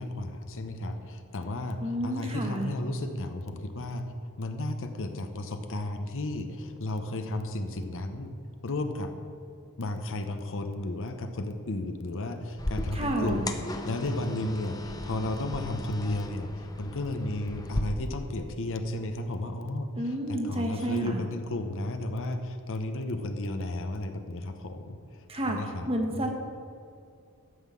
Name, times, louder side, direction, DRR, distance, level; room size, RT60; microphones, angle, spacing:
voice 1, 0.0-4.1 4.4-8.3 8.6-9.1 9.8-26.3, left 1 dB, 60° left, 7 dB, 0.9 m, -33 dB
voice 2, 1.8-2.7 12.9-13.5 20.0-21.2 25.3-25.6 25.9-26.3, right 1 dB, 25° right, 2 dB, 1.3 m, -30 dB
sound 1, 12.6-17.8, left 1 dB, 15° left, 0.7 m, -36 dB
13.0 x 5.7 x 7.5 m, 2.4 s
head